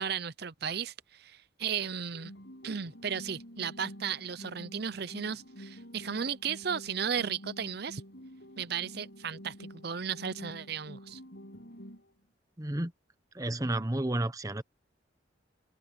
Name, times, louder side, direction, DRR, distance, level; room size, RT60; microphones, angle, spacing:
voice 1, 0.0-2.3 2.6-8.0 8.6-11.2, right 7 dB, 55° right, 0.7 m, -35 dB
sound 1, 2.1-12.1, equal, 60° left, 7.9 m, -49 dB
voice 2, 12.6-12.9 13.3-14.6, right 1 dB, 20° right, 1.0 m, -31 dB
head